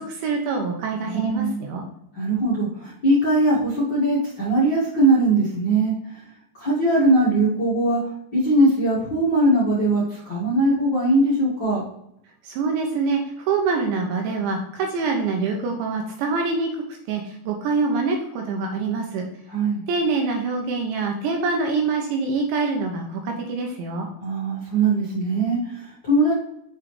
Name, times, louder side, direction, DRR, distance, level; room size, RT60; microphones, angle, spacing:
voice 1, 0.0-1.8 12.4-13.2 13.5-16.7 17.1-19.3 19.9-24.1, right 4 dB, 75° right, 1 dB, 2.9 m, -25 dB
voice 2, 1.1-1.7 2.1-5.9 6.5-8.0 8.3-11.8 19.5-19.8 24.2-26.4, right 2 dB, 45° left, -10 dB, 1.5 m, -20 dB
7.4 x 5.5 x 3.3 m, 0.74 s
omnidirectional pair, 5.9 m